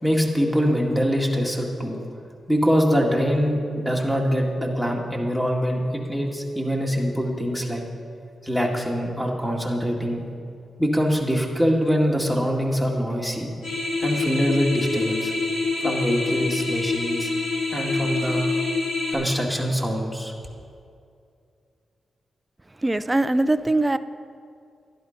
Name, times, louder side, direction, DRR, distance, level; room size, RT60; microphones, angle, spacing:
voice 1, 0.0-2.0 2.5-7.8 8.4-10.2 10.8-13.5 14.0-15.3 15.8-17.3 17.7-18.4 19.1-20.3, equal, 5° left, -1 dB, 2.1 m, -23 dB
sound 1, 13.6-19.1, left 3 dB, 85° left, 3.6 m, -26 dB
voice 2, 22.8-24.0, right 2 dB, 15° right, 12 dB, 0.5 m, -21 dB
12.0 x 11.5 x 5.2 m, 2.4 s
cardioid pair, 80°, 0 cm